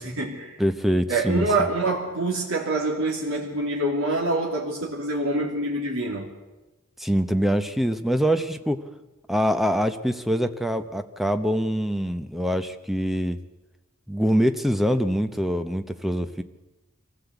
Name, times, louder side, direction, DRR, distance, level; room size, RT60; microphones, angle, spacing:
voice 1, 0.0-0.6 1.1-6.3, right 2 dB, 75° right, -2 dB, 2.9 m, -26 dB
voice 2, 0.6-1.5 7.0-8.8 9.3-13.4 14.1-16.4, equal, ahead, 9 dB, 0.8 m, -24 dB
24.0 x 15.5 x 8.2 m, 1.1 s
head